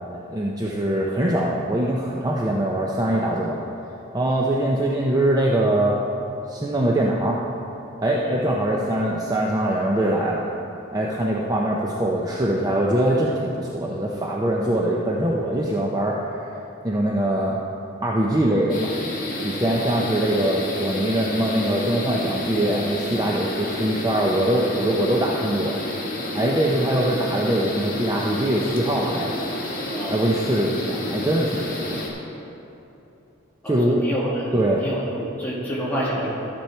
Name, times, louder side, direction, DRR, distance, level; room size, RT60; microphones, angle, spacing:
voice 1, 0.3-3.6 4.1-6.0 6.5-7.4 8.0-10.4 10.9-16.6 16.8-17.6 18.0-19.0 19.4-25.8 26.3-29.4 30.1-32.1 33.7-34.1 34.5-34.8, right 1 dB, 20° right, -3 dB, 0.6 m, -22 dB
sound 1, 18.7-32.1, left 1 dB, 45° left, 1.7 m, -30 dB
voice 2, 19.6-19.9 29.9-30.3 33.6-34.5 34.8-36.5, equal, 10° left, -8 dB, 2.2 m, -29 dB
13.5 x 7.0 x 4.4 m, 2.8 s
head